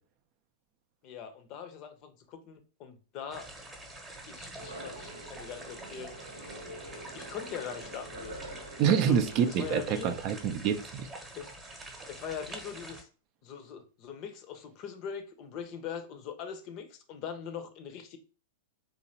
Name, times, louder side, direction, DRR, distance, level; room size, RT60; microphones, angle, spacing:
voice 1, 1.0-3.5 4.3-6.2 7.1-8.4 8.9-9.2 9.5-10.1 11.4-11.5 12.1-13.1 13.4-18.2, left 7 dB, 40° left, 0.6 m, -41 dB
sound 1, 3.3-13.0, right 2 dB, 15° right, 0.9 m, -46 dB
sound 2, 4.6-9.8, right 1 dB, 80° right, 0.8 m, -46 dB
voice 2, 8.8-11.1, right 8 dB, 40° right, 0.4 m, -27 dB
3.8 x 2.9 x 2.8 m
figure-of-eight pair, 95°, 0 cm